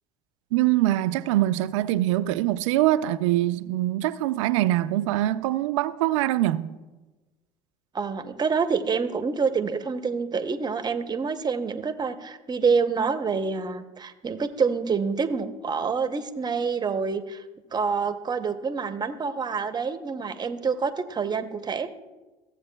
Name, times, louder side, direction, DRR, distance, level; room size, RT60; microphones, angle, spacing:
voice 1, 0.5-6.7, right 15 dB, 85° right, 0.4 m, -23 dB
voice 2, 7.9-17.4 17.7-21.9, right 5 dB, 25° right, 0.7 m, -27 dB
14.5 x 7.9 x 2.2 m
hypercardioid pair, 80°, 16 cm